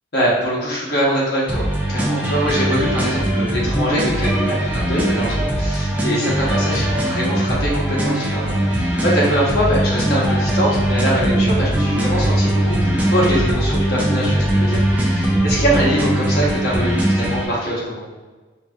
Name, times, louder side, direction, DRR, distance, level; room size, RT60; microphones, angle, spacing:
voice 1, 0.1-18.0, equal, 55° left, -6 dB, 1.1 m, -23 dB
sound 1, 1.5-17.5, right 1 dB, 10° right, 0.4 m, -20 dB
4.0 x 2.7 x 2.4 m, 1.3 s
head